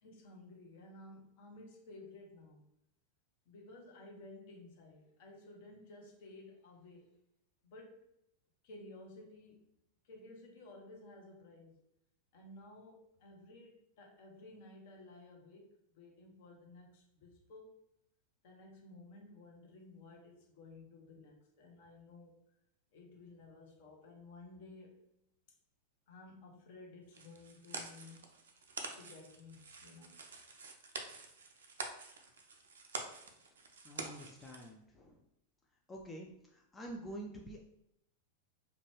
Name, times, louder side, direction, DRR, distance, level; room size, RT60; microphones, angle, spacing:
voice 1, 0.0-2.7 3.5-7.1 7.6-8.1 8.6-9.6 10.0-11.8 12.3-17.8 18.4-22.4 22.9-25.0 26.1-28.3 29.0-30.2, left 2 dB, 50° left, 1 dB, 0.7 m, -55 dB
sound 1, 27.1-34.7, right 4 dB, 65° right, 0.4 m, -47 dB
voice 2, 33.8-35.2 35.9-37.6, right 1 dB, 15° left, 0 dB, 0.3 m, -47 dB
2.5 x 2.2 x 3.0 m, 0.80 s
figure-of-eight pair, 90°, 0 cm